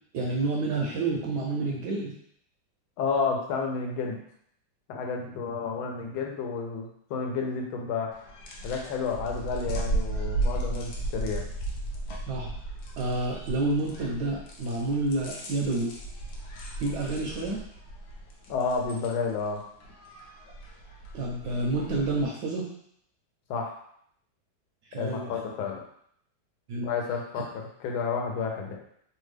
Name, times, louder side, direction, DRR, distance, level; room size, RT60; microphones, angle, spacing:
voice 1, 0.1-2.1 12.3-12.5 13.0-15.9 16.8-17.6 21.1-22.6 24.9-25.3 26.7-26.9, right 2 dB, 75° right, -2 dB, 1.0 m, -29 dB
voice 2, 3.0-4.2 4.9-8.1 8.6-11.4 18.5-19.6 23.5-23.7 25.0-25.8 26.8-28.8, left 5 dB, 85° left, 1 dB, 1.4 m, -31 dB
sound 1, 8.1-22.3, right 2 dB, 65° left, 1.1 m, -35 dB
3.5 x 2.2 x 3.2 m, 0.68 s
omnidirectional pair, 2.2 m